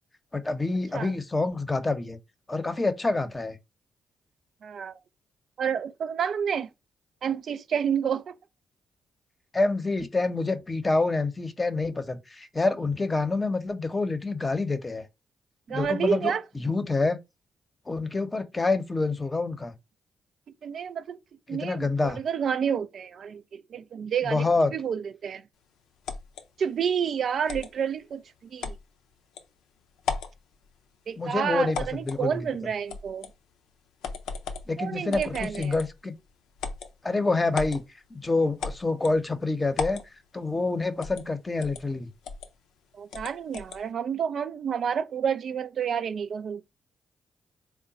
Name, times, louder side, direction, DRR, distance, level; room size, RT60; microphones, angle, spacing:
voice 1, 0.3-2.2 2.5-3.6 9.5-15.1 15.7-17.2 17.9-19.8 21.5-22.2 24.2-24.7 31.2-32.7 34.7-36.1 37.0-37.8 38.1-40.0 40.3-42.1, left 3 dB, 25° left, 0.8 m, -27 dB
voice 2, 4.6-5.0 5.6-6.7 7.2-8.3 15.7-16.4 20.6-21.2 21.5-24.4 24.7-25.4 26.6-28.2 28.5-28.7 31.1-33.3 34.8-35.7 42.9-46.6, right 7 dB, 60° right, 0.3 m, -29 dB
sound 1, 26.1-26.4 27.5-27.7 28.6-28.8 29.4-29.5 30.0-30.4 31.7-32.2 32.9-33.3 34.0-34.7 35.1-36.0 36.6-36.9 37.5-37.8 38.6-39.2 39.8-40.1 41.0-41.3 41.6-41.8 42.2-42.5 43.1-43.8, left 5 dB, 75° left, 0.5 m, -35 dB
3.6 x 2.1 x 4.0 m
hypercardioid pair, 45°, 0 cm